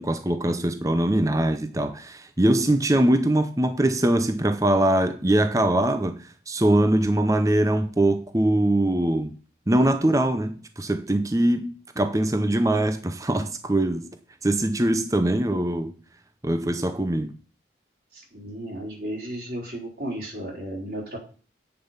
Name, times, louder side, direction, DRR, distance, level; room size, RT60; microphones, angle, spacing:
voice 1, 0.0-9.3 9.7-14.1 14.4-15.9 16.4-17.3, right 1 dB, 15° right, 0.7 m, -22 dB
voice 2, 18.1-21.2, right 1 dB, 55° right, 4.1 m, -34 dB
8.9 x 7.0 x 5.7 m
head